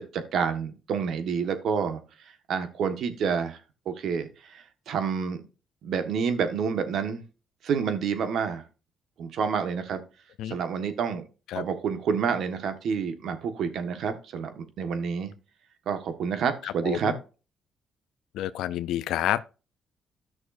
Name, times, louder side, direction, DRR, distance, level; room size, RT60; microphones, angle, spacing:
voice 1, 0.0-2.0 2.5-3.6 3.8-5.4 5.8-7.2 7.6-8.6 9.2-10.0 10.5-11.2 11.5-15.3 15.9-17.1, right 6 dB, 70° right, 1.4 m, -28 dB
voice 2, 16.6-17.2 18.3-19.6, left 12 dB, 85° left, 0.5 m, -29 dB
14.0 x 6.3 x 2.5 m
cardioid pair, 90°, 0 cm